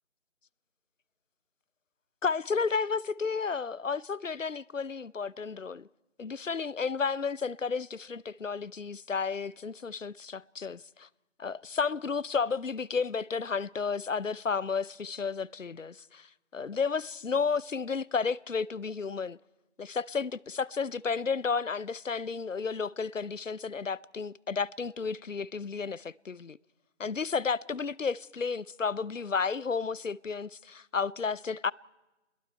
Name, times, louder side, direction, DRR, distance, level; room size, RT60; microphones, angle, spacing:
voice 1, 2.2-5.9 6.2-11.1 11.4-16.3 16.5-19.4 19.8-26.6 27.0-31.7, left 5 dB, 85° left, 0.7 m, -32 dB
29.0 x 21.5 x 4.5 m
figure-of-eight pair, 170°, 37 cm